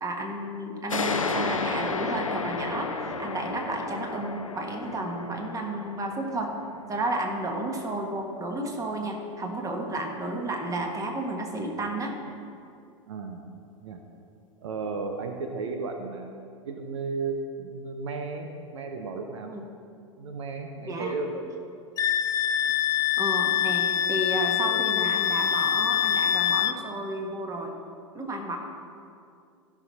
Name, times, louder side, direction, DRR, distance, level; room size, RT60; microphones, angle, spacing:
voice 1, 0.0-6.5 6.9-12.2 19.5-19.7 20.9-21.1 23.2-27.8 28.1-28.6, right 1 dB, 20° right, 2 dB, 1.6 m, -32 dB
sound 1, 0.9-8.1, left 4 dB, 90° left, 0.6 m, -33 dB
voice 2, 13.1-13.4 13.8-14.0 14.6-16.4 16.6-19.5 20.2-21.4, right 4 dB, 70° right, 5 dB, 0.8 m, -34 dB
Wind instrument woodwind instrument, 22.0-26.8, left 10 dB, 20° left, 0.3 m, -25 dB
14.5 x 6.1 x 4.1 m, 2.4 s
figure-of-eight pair, 85°, 17 cm